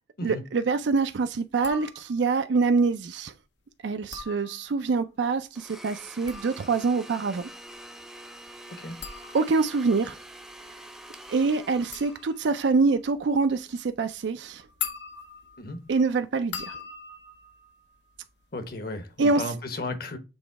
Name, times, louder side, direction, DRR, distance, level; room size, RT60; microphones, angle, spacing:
voice 1, 0.2-3.3 3.8-7.5 9.3-10.2 11.3-14.6 15.9-16.8 19.2-19.5, right 4 dB, 80° right, 0.4 m, -25 dB
sound 1, 1.5-2.4 3.9-5.0 6.0-18.7 19.0-19.5, left 7 dB, 85° left, 0.9 m, -42 dB
Domestic sounds home sounds, 5.6-12.6, right 1 dB, ahead, 0.6 m, -46 dB
voice 2, 18.5-20.2, left 2 dB, 55° left, 1.1 m, -34 dB
7.1 x 3.1 x 4.6 m
head